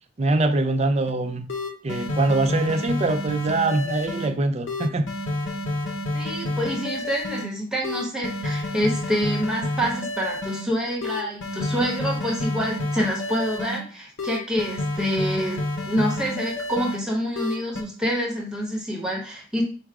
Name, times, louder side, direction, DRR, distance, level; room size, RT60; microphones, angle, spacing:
voice 1, 0.2-1.5 1.8-5.1, right 2 dB, 35° right, 7 dB, 0.4 m, -23 dB
sound 1, 1.1-1.2 1.5-4.3 4.7-7.4 7.8-10.6 11.0-13.8 14.2-17.0 17.4-17.8, left 2 dB, 85° left, 0.8 m, -29 dB
voice 2, 6.1-19.6, equal, 5° right, -3 dB, 1.1 m, -27 dB
4.7 x 2.3 x 4.7 m, 0.38 s
head